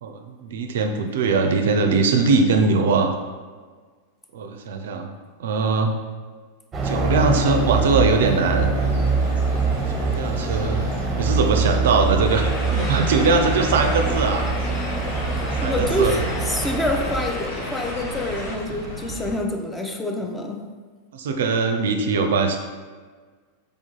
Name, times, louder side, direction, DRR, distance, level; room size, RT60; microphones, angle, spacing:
voice 1, 0.0-3.1 4.3-5.1 5.4-6.0 6.8-8.7 10.1-10.8 11.2-14.5 15.6-16.1 21.1-22.6, right 4 dB, 60° right, 5 dB, 0.4 m, -21 dB
sound 1, 6.7-17.2, right 3 dB, 20° right, 0.8 m, -24 dB
sound 2, 8.7-19.3, equal, 70° left, 1.2 m, -34 dB
sound 3, 12.2-18.6, left 2 dB, 40° left, 0.9 m, -33 dB
voice 2, 15.6-20.7, left 1 dB, 10° left, 2 dB, 0.5 m, -26 dB
3.6 x 3.5 x 3.8 m, 1.5 s
figure-of-eight pair, 90°, 0 cm